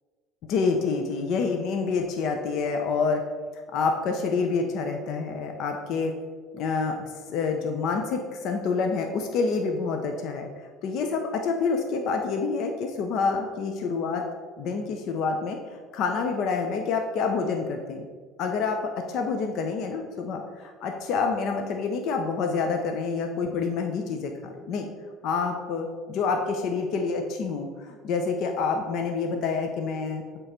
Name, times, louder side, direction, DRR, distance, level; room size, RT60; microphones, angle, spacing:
voice 1, 0.4-3.2 3.7-6.1 6.5-10.5 10.8-14.2 14.6-15.6 15.9-18.1 18.4-24.9 25.2-30.2, left 4 dB, 65° left, 4 dB, 0.7 m, -27 dB
7.6 x 3.1 x 5.1 m, 1.5 s
supercardioid pair, 100°, 0 cm